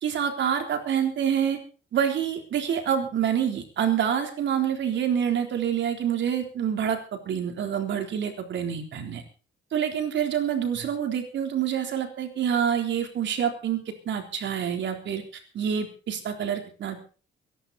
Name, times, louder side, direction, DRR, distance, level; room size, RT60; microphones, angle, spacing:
voice 1, 0.0-1.6 1.9-9.2 9.7-15.2 15.5-17.0, right 8 dB, 70° right, 5 dB, 3.7 m, -27 dB
23.5 x 11.0 x 4.3 m, 0.38 s
cardioid pair, 90°, 20 cm